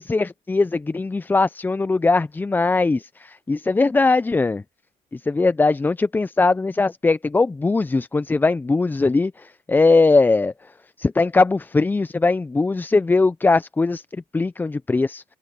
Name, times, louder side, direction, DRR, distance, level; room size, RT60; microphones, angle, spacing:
voice 1, 0.0-4.6 5.1-10.5 11.0-14.0 14.3-15.2, left 3 dB, 10° left, 0.3 m, -20 dB
open air
cardioid pair, 110°, 17 cm